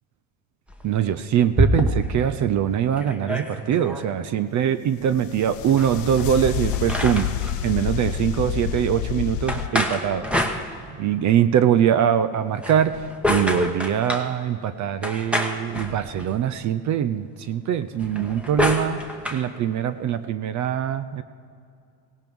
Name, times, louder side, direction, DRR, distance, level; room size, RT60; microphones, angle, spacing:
sound 1, 0.7-2.3 2.7-2.8 3.0-4.1 5.7-7.6 9.5-11.2 12.5-14.3 15.0-16.4 17.9-19.4, equal, 5° right, 1.3 m, -27 dB
voice 1, 0.8-7.3 7.6-10.3 11.0-19.0 19.3-21.2, right 9 dB, 40° right, 13 dB, 0.6 m, -23 dB
sound 2, 5.1-9.7, left 11 dB, 50° left, 0.7 m, -28 dB
Thunder, 5.8-8.4, left 4 dB, 30° left, 1.6 m, -46 dB
18.0 x 16.5 x 3.6 m, 2.4 s
supercardioid pair, 100°, 45 cm